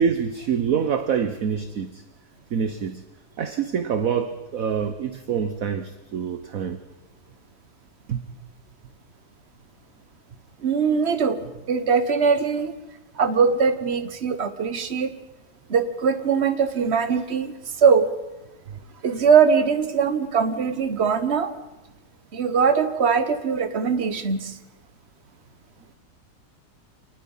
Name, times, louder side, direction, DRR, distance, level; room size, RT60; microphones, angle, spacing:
voice 1, 0.0-2.0 2.5-3.0 3.4-6.8 8.1-8.2 18.7-18.8, right 7 dB, 55° right, 10 dB, 1.3 m, -26 dB
voice 2, 10.6-11.4 11.7-12.7 13.1-15.1 15.7-18.1 19.0-21.5 22.3-24.6, right 6 dB, 40° right, 10 dB, 1.5 m, -21 dB
28.0 x 19.5 x 5.6 m, 1.1 s
omnidirectional pair, 1.9 m